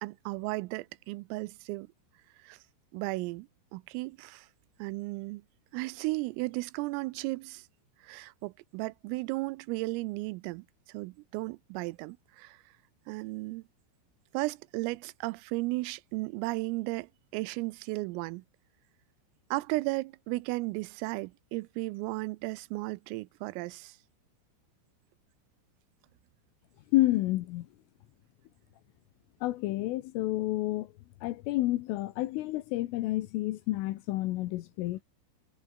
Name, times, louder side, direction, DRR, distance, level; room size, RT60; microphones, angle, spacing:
voice 1, 0.0-1.9 2.4-2.6 2.9-4.5 4.8-5.4 5.7-7.7 8.0-12.6 13.1-13.6 14.3-18.4 19.5-24.0, right 22 dB, 90° right, 3.4 m, -35 dB
voice 2, 26.9-27.7 29.4-30.9 31.2-35.0, left 17 dB, 80° left, 3.6 m, -29 dB
omnidirectional pair, 5.8 m